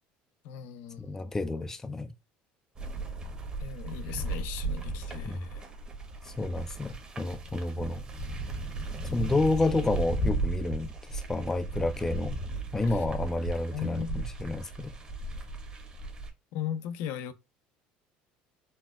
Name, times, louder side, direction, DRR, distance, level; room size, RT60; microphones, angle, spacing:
voice 1, 0.4-1.3 3.6-5.7 7.8-8.1 12.9-13.0 13.7-14.2 16.5-17.3, left 9 dB, 70° left, 0.5 m, -38 dB
voice 2, 1.0-2.1 5.2-5.4 6.2-8.0 9.1-12.4 12.7-14.9, left 2 dB, 10° left, 0.3 m, -30 dB
sound 1, 2.8-16.3, right 2 dB, 25° right, 0.9 m, -36 dB
4.1 x 2.1 x 2.2 m
cardioid pair, 125°, 4 cm